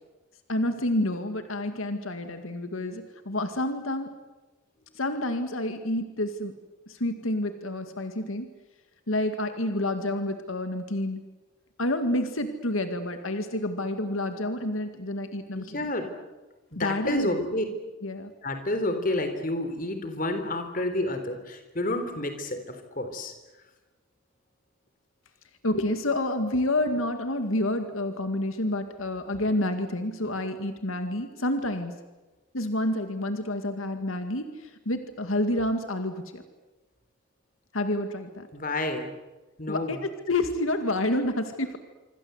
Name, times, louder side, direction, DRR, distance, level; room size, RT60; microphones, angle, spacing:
voice 1, 0.5-4.1 4.9-6.5 6.9-8.5 9.1-11.2 11.8-15.9 16.8-17.5 18.0-18.3 25.6-31.9 32.5-36.4 37.7-38.5 39.7-41.8, left 1 dB, 80° left, 7 dB, 2.1 m, -29 dB
voice 2, 15.5-16.1 16.7-17.7 18.4-23.3 38.5-39.1 39.6-40.0, left 1 dB, 40° left, 8 dB, 3.7 m, -30 dB
26.5 x 25.0 x 8.2 m, 1.1 s
head